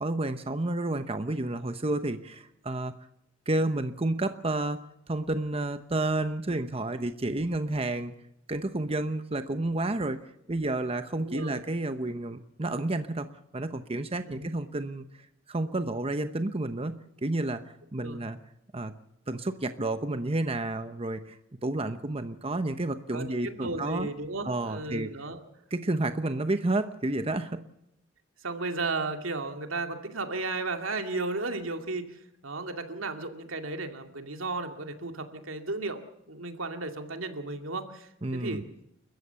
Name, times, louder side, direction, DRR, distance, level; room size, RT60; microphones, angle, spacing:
voice 1, 0.0-2.9 3.5-4.8 5.1-8.1 8.5-10.2 10.5-13.3 13.5-15.0 15.5-17.6 17.9-18.4 18.7-18.9 19.3-24.1 24.4-25.1 25.7-27.6 38.2-38.6, right 2 dB, 30° right, 9 dB, 0.9 m, -30 dB
voice 2, 11.2-11.6 14.3-14.5 18.0-18.2 23.1-25.4 28.4-38.6, right 3 dB, 85° right, 5 dB, 2.4 m, -34 dB
30.0 x 14.5 x 7.0 m, 0.80 s
head